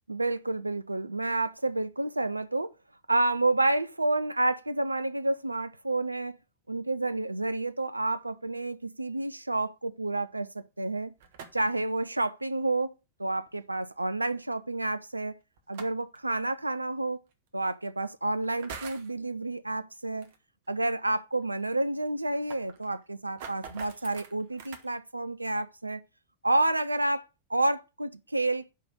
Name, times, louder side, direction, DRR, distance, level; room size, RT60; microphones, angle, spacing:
voice 1, 0.1-2.7 3.1-6.4 6.7-11.1 11.5-12.9 13.2-15.3 15.7-17.2 17.5-20.3 20.7-26.0 26.4-27.2 27.5-28.7, right 2 dB, 85° right, 0.5 m, -29 dB
sound 1, 11.2-11.8 13.5-13.6 15.6-16.2 17.3-17.4 18.4-19.1 20.2-20.4 20.7-20.8 21.1-21.2 21.4-21.5 22.1-24.9, right 6 dB, 55° right, 1.2 m, -44 dB
5.6 x 5.0 x 6.2 m
figure-of-eight pair, 90°, 0 cm